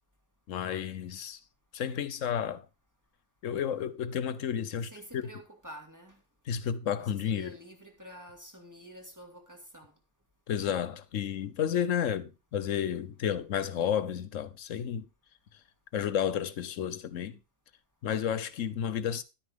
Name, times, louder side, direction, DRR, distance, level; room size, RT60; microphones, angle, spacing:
voice 1, 0.5-1.4 1.7-2.6 3.4-5.2 6.5-7.5 10.5-15.1 15.9-17.4 18.0-19.2, left 9 dB, 80° left, 1.2 m, -31 dB
voice 2, 4.8-6.2 7.0-9.9, equal, 15° right, 2.2 m, -49 dB
10.5 x 9.6 x 3.6 m
omnidirectional pair, 1.3 m